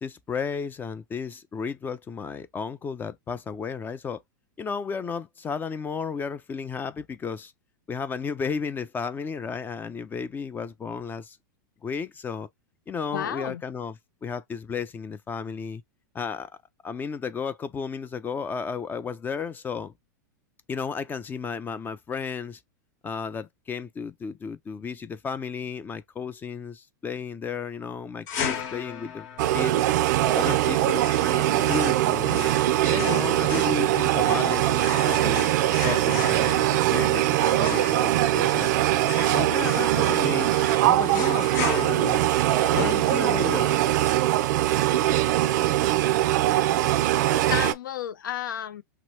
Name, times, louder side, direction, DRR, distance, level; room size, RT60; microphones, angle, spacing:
voice 1, 0.0-4.2 4.6-7.5 7.9-11.4 11.8-12.5 12.9-15.8 16.1-16.5 16.8-19.9 20.7-22.6 23.0-29.3 29.5-29.8 30.3-32.6 32.9-35.5 35.8-38.7 39.3-42.3 42.8-43.8, left 6 dB, 20° left, 0.3 m, -33 dB
voice 2, 13.1-13.6 47.2-48.8, left 10 dB, 90° left, 0.4 m, -32 dB
sound 1, 28.3-43.6, left 7 dB, 55° left, 1.0 m, -37 dB
sound 2, 29.4-47.7, right 14 dB, 65° right, 0.4 m, -22 dB
2.9 x 2.3 x 3.1 m
hypercardioid pair, 115°, 10 cm